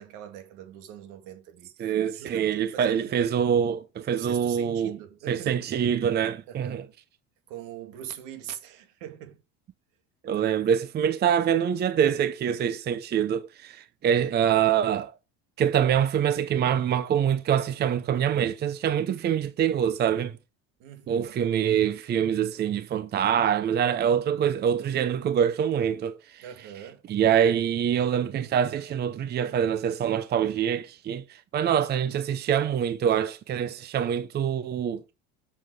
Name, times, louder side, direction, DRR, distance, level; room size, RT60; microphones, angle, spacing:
voice 1, 0.0-3.3 4.1-5.6 6.5-6.9 7.5-9.4 10.3-10.8 20.8-21.5 26.4-27.0, right 10 dB, 70° right, 2.3 m, -43 dB
voice 2, 1.8-5.0 5.3-6.8 10.2-15.1 15.6-20.3 21.1-26.4 27.1-35.0, right 9 dB, 30° right, 0.7 m, -25 dB
7.7 x 7.1 x 4.9 m
supercardioid pair, 125°, 33 cm